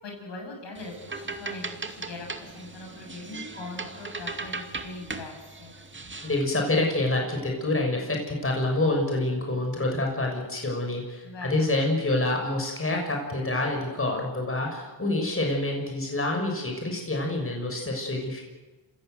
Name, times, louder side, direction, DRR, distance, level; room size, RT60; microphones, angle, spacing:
voice 1, 0.0-5.7 11.2-11.7, left 2 dB, 60° left, 1 dB, 7.9 m, -41 dB
sound 1, 0.8-6.4, right 3 dB, 25° right, 2.4 m, -38 dB
voice 2, 6.2-18.4, left 2 dB, 25° left, 1 dB, 6.7 m, -27 dB
27.0 x 16.5 x 8.0 m, 1.2 s
cardioid pair, 65°, 47 cm